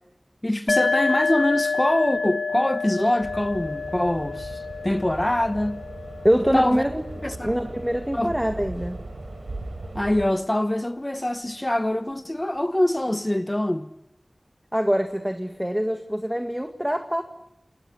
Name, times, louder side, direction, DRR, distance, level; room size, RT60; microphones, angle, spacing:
voice 1, 0.4-5.8 6.5-6.8 7.2-7.5 8.1-8.3 9.9-13.9, left 1 dB, 25° left, 1.1 m, -24 dB
sound 1, 0.7-8.2, left 4 dB, 85° left, 0.9 m, -29 dB
sound 2, 3.2-10.3, right 2 dB, 80° right, 4.2 m, -38 dB
voice 2, 6.2-7.0 7.4-9.0 14.7-17.2, equal, 10° right, 1.9 m, -24 dB
29.5 x 21.0 x 8.4 m
wide cardioid pair, 40°, 0 cm